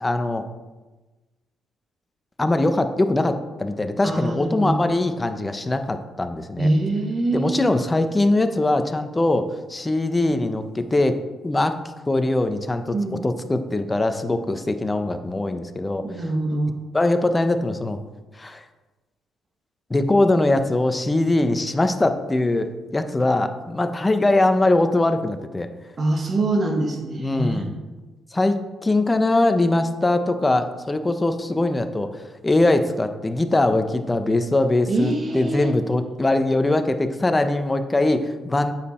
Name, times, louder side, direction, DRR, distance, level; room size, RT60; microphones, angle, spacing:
voice 1, 0.0-0.4 2.4-6.7 7.3-11.2 11.4-11.8 12.1-12.9 13.2-16.0 16.9-18.0 18.3-18.6 19.9-25.7 27.2-27.7 28.3-38.7, left 2 dB, 20° left, 8 dB, 0.8 m, -22 dB
voice 2, 4.0-4.8 6.6-7.7 12.9-13.3 16.0-16.7 26.0-27.7 34.9-35.7, right 2 dB, 40° right, 2 dB, 1.7 m, -24 dB
9.3 x 7.5 x 4.4 m, 1.2 s
cardioid pair, 90°, 0 cm